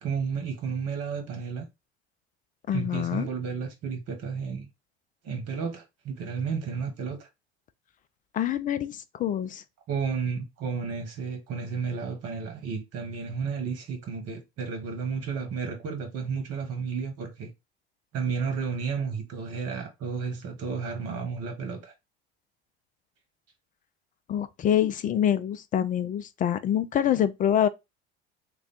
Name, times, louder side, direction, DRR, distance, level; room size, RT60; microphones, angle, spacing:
voice 1, 0.0-1.7 2.7-4.7 5.2-7.3 9.9-17.5 18.1-21.9, right 5 dB, 45° right, 1.4 m, -32 dB
voice 2, 2.7-3.3 8.3-9.6 24.3-27.7, left 10 dB, 25° left, 0.4 m, -26 dB
3.3 x 2.3 x 4.1 m
hypercardioid pair, 80°, 33 cm